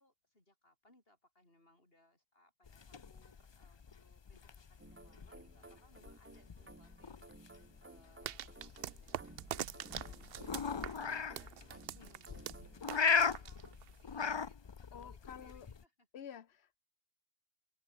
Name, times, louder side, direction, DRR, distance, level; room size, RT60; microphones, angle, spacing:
voice 1, 0.0-16.1, left 1 dB, 65° left, 6.2 m, -69 dB
sound 1, 2.7-15.8, left 6 dB, 35° left, 0.5 m, -39 dB
sound 2, 4.8-13.5, right 2 dB, 15° right, 0.5 m, -58 dB
sound 3, 8.2-14.0, right 11 dB, 70° right, 0.8 m, -44 dB
voice 2, 14.9-15.7 16.1-16.8, left 8 dB, 80° left, 1.2 m, -50 dB
open air
omnidirectional pair, 1.1 m